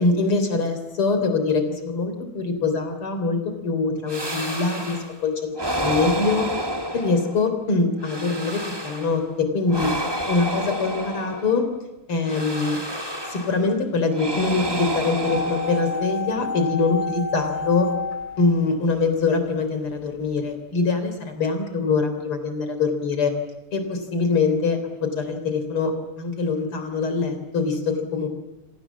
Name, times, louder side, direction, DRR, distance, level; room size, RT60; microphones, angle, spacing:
voice 1, 0.0-5.0 5.2-6.5 6.9-9.9 10.3-11.7 12.1-12.8 13.3-17.9 18.4-23.3 23.7-25.9 26.2-28.3, left 4 dB, 80° left, 7 dB, 4.6 m, -23 dB
sound 1, 4.1-5.2 5.5-7.5 8.0-9.2 9.7-11.7 12.2-13.6 14.1-16.2, equal, 10° right, 2.0 m, -29 dB
sound 2, 15.2-19.3 19.6-19.7, left 3 dB, 55° left, 3.4 m, -30 dB
29.0 x 25.5 x 7.4 m, 0.97 s
omnidirectional pair, 2.4 m